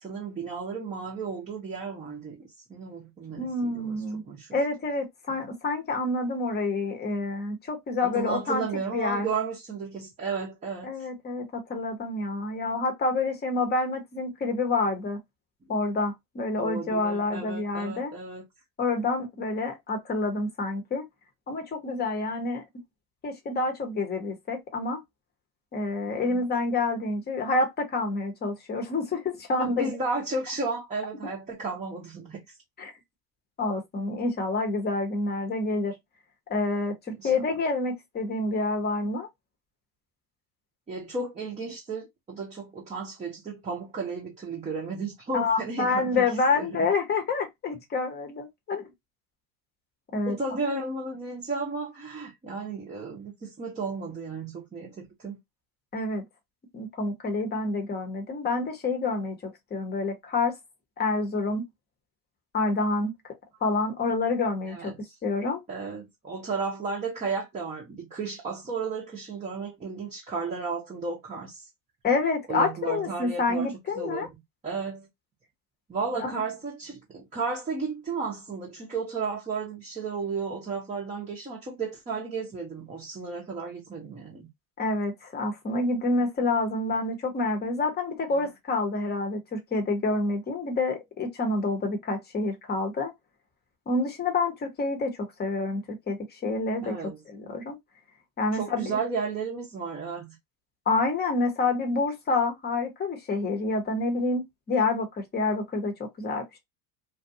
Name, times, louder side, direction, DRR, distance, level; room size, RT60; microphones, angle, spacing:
voice 1, 0.0-4.0 4.3-4.6 5.3-5.4 8.0-11.1 16.6-18.4 26.1-26.4 29.6-32.6 37.1-37.3 40.9-46.3 46.6-46.9 50.3-55.4 64.7-65.0 65.7-71.7 72.5-73.7 74.0-74.3 74.6-75.1 75.9-84.5 88.3-88.5 96.8-97.2 98.5-100.4, right 4 dB, 15° right, 0.8 m, -34 dB
voice 2, 3.4-4.2 4.5-8.6 8.9-9.3 10.8-15.2 15.7-18.1 18.8-21.1 21.5-22.6 23.2-25.0 25.7-29.9 31.2-31.3 32.8-32.9 33.6-35.9 36.5-39.3 45.3-48.9 50.1-50.4 55.9-56.2 56.7-60.6 61.0-61.7 62.5-63.1 63.6-65.6 72.0-74.3 76.1-76.4 84.8-93.1 93.9-97.0 97.3-97.8 98.4-99.0 100.9-106.6, left 3 dB, 20° left, 0.9 m, -28 dB
2.5 x 2.3 x 2.6 m
hypercardioid pair, 105°, 48 cm